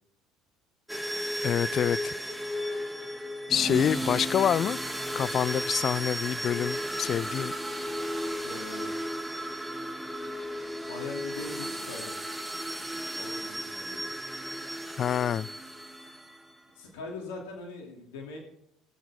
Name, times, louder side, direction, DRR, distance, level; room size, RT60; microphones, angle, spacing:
sound 1, 0.9-16.5, equal, ahead, 1.5 m, -34 dB
voice 1, 1.4-2.1 3.5-4.8 5.1-7.5 15.0-15.5, left 9 dB, 45° left, 0.3 m, -27 dB
voice 2, 8.4-8.9 10.9-12.3 13.2-14.1 16.7-18.4, left 3 dB, 85° left, 2.7 m, -41 dB
21.0 x 7.2 x 3.6 m
supercardioid pair, 80°, 0 cm